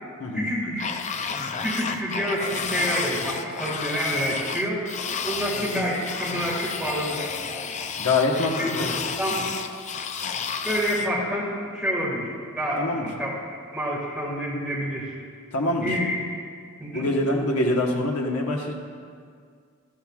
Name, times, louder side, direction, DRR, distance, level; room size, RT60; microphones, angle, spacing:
voice 1, 0.3-0.9 1.6-4.8 5.2-7.3 8.6-8.7 9.2-9.3 10.6-12.9 13.2-13.3 13.7-15.1 15.8-16.1 16.8-17.1, equal, 5° right, -5 dB, 1.9 m, -27 dB
sound 1, 0.8-11.1, left 6 dB, 35° left, 0.5 m, -31 dB
voice 2, 8.0-8.9 12.8-13.1 15.5-15.9 16.9-18.7, left 2 dB, 80° left, 0 dB, 1.3 m, -24 dB
13.5 x 13.5 x 2.4 m, 2.1 s
head